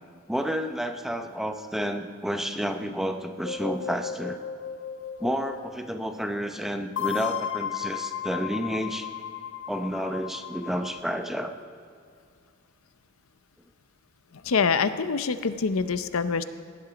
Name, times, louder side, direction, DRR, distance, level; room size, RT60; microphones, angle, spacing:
voice 1, 0.3-4.4 5.2-9.1 9.7-11.5, equal, ahead, 6 dB, 0.7 m, -30 dB
sound 1, 3.4-5.7 7.0-11.2, left 9 dB, 65° left, 0.9 m, -34 dB
voice 2, 14.3-16.4, left 5 dB, 85° left, 12 dB, 0.6 m, -25 dB
18.0 x 10.5 x 5.0 m, 2.3 s
head